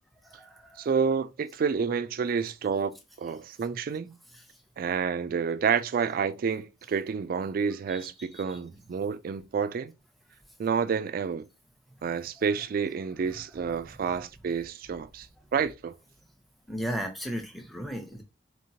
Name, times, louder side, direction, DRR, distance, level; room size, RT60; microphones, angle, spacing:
voice 1, 0.2-0.9 4.3-4.4 7.9-8.6 13.3-13.4 14.0-14.2 16.7-18.2, equal, ahead, 0.6 m, -37 dB
voice 2, 0.8-4.2 4.8-9.9 10.6-11.5 12.0-15.3 15.5-15.9, right 6 dB, 50° right, 0.3 m, -29 dB
4.2 x 2.9 x 2.7 m
head